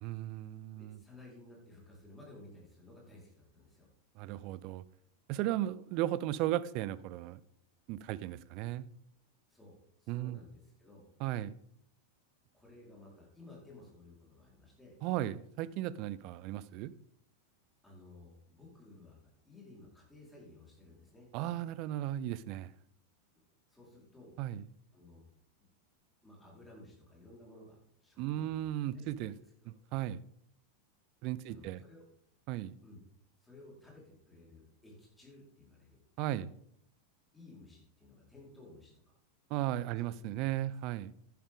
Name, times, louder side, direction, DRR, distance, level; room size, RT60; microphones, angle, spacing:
voice 1, 0.0-1.0 4.2-4.8 5.3-7.4 7.9-8.9 10.1-10.4 11.2-11.5 15.0-16.9 21.3-22.7 24.4-24.6 28.2-29.3 29.7-30.2 31.2-31.8 32.5-32.8 36.2-36.5 39.5-41.1, right 13 dB, 40° right, 0.5 m, -36 dB
voice 2, 0.8-3.9 9.5-11.1 12.5-14.9 17.8-21.3 23.7-24.3 24.9-25.2 26.2-28.6 28.9-29.4 29.6-29.7 31.5-32.0 32.8-33.0 33.4-36.0 37.3-38.9 39.9-40.4, left 2 dB, 5° left, 4.5 m, -56 dB
11.0 x 10.0 x 3.8 m
figure-of-eight pair, 90°, 0 cm